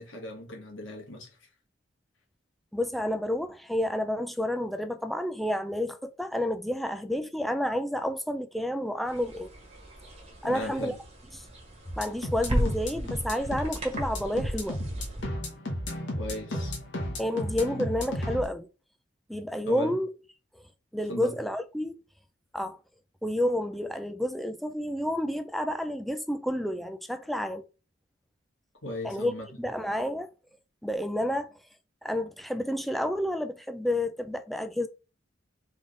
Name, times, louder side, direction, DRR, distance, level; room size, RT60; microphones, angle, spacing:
voice 1, 0.0-1.5 10.4-11.0 16.2-16.7 19.7-20.0 21.1-21.4 28.8-29.7, equal, 85° left, 1.7 m, -37 dB
voice 2, 2.7-9.5 10.4-10.9 12.0-14.8 17.2-18.7 19.3-20.1 20.9-22.0 22.5-22.8 23.2-27.6 29.0-30.3 30.8-31.5 32.0-34.9, left 1 dB, ahead, 0.4 m, -30 dB
sound 1, 9.1-15.2, equal, 35° right, 1.5 m, -35 dB
sound 2, 11.9-18.4, left 1 dB, 70° left, 1.3 m, -34 dB
3.7 x 3.5 x 3.8 m
head